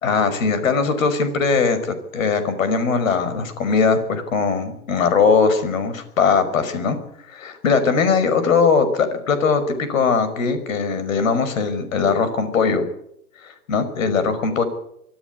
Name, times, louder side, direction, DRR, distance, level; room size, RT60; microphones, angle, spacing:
voice 1, 0.0-7.0 7.3-12.9 13.4-14.6, left 5 dB, 60° left, 11 dB, 5.5 m, -20 dB
24.0 x 14.0 x 9.6 m, 0.76 s
hypercardioid pair, 125°, 45 cm